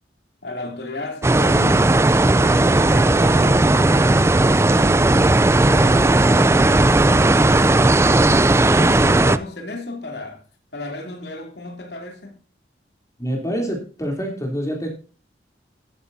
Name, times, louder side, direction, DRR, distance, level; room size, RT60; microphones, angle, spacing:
voice 1, 0.4-2.0 2.4-10.4 10.7-12.4, left 2 dB, 70° left, 3.0 m, -34 dB
sound 1, 1.2-9.4, right 2 dB, 15° right, 0.4 m, -15 dB
voice 2, 13.2-14.9, equal, 20° left, 3.2 m, -26 dB
14.0 x 10.0 x 2.7 m
head